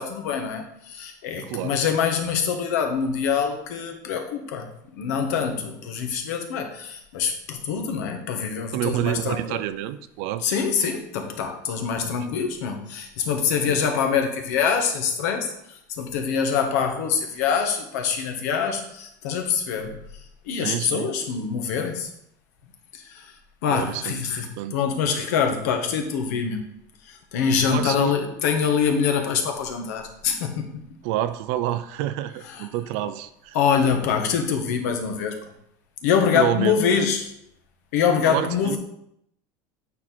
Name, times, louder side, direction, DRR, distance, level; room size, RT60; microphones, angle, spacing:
voice 1, 0.0-9.6 10.4-20.0 20.4-22.1 22.9-26.6 27.0-30.9 32.4-32.7 33.5-35.5 36.0-37.3 37.9-38.8, left 6 dB, 80° left, 5 dB, 1.3 m, -25 dB
voice 2, 1.4-1.8 8.7-10.5 12.0-12.2 13.6-14.0 20.6-21.1 23.7-24.8 27.7-28.1 31.0-33.6 36.3-37.1 38.3-38.8, right 13 dB, 55° right, 12 dB, 0.5 m, -28 dB
8.6 x 4.4 x 4.3 m, 0.74 s
cardioid pair, 180°, 9 cm